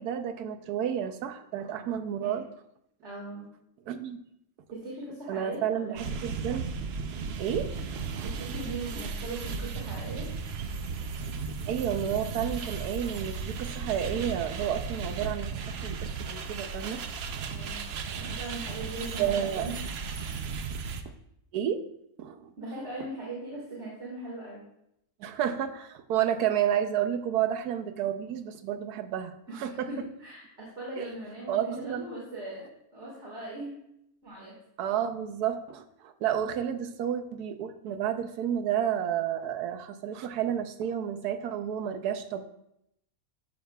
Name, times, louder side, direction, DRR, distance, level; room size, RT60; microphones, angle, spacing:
voice 1, 0.0-2.4 3.9-4.2 5.3-6.7 7.4-8.3 11.7-17.0 19.2-19.7 21.5-21.8 22.2-22.5 25.2-29.9 31.5-32.1 34.8-42.4, right 9 dB, 85° right, 9 dB, 1.2 m, -31 dB
voice 2, 3.0-3.5 4.7-6.1 8.2-10.3 15.2-15.7 17.5-17.8 18.2-19.7 22.6-24.6 29.5-32.7 32.9-33.8 34.2-34.5 36.7-36.9, right 2 dB, 50° right, -5 dB, 2.1 m, -40 dB
sound 1, 6.0-21.0, right 5 dB, 65° right, 0.6 m, -35 dB
11.5 x 6.4 x 2.3 m, 0.78 s
omnidirectional pair, 1.6 m